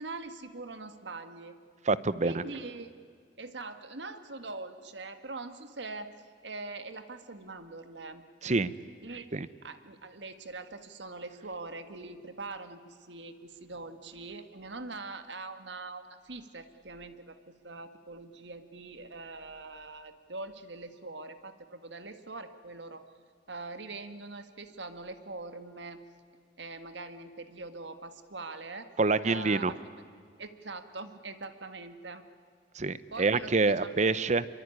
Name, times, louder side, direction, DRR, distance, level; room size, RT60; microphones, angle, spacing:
voice 1, 0.0-1.5 2.2-2.9 3.4-6.1 6.4-8.2 9.0-9.3 9.6-23.1 23.5-26.0 26.6-28.9 29.2-29.9 30.4-32.2 33.1-34.1, right 3 dB, 75° right, 9 dB, 1.7 m, -43 dB
voice 2, 1.8-2.4 8.4-8.7 9.3-9.5 29.0-29.7 32.7-34.5, right 3 dB, 40° right, 16 dB, 0.8 m, -26 dB
25.0 x 23.5 x 9.7 m, 2.1 s
head